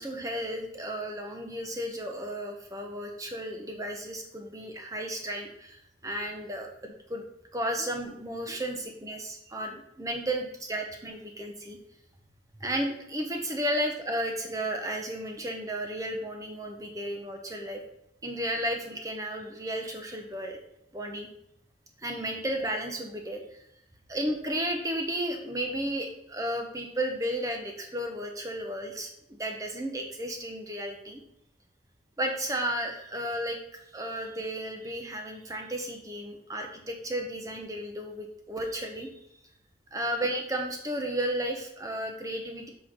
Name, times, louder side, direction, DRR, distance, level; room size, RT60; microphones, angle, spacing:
voice 1, 0.0-7.2 7.5-11.8 12.6-17.8 18.2-20.6 20.9-21.3 22.0-23.6 24.1-31.2 32.2-33.6 33.9-39.1 39.9-42.7, right 1 dB, 20° right, 3 dB, 1.0 m, -33 dB
7.5 x 4.6 x 3.7 m, 0.76 s
head